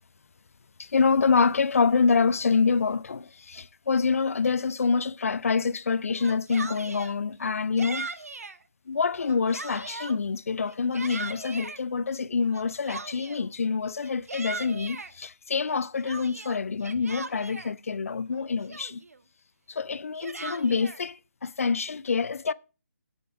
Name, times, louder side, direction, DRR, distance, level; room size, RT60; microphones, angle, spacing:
voice 1, 0.8-8.1 8.9-19.0 19.7-22.5, left 5 dB, 60° left, 0.5 m, -26 dB
Yell, 6.1-7.1 7.8-8.6 9.1-10.2 10.7-11.8 12.5-13.5 14.0-15.1 15.6-17.7 18.3-18.4 18.7-19.2 19.9-21.0, right 3 dB, 65° right, 1.4 m, -39 dB
14.5 x 7.9 x 4.7 m
figure-of-eight pair, 150°, 9 cm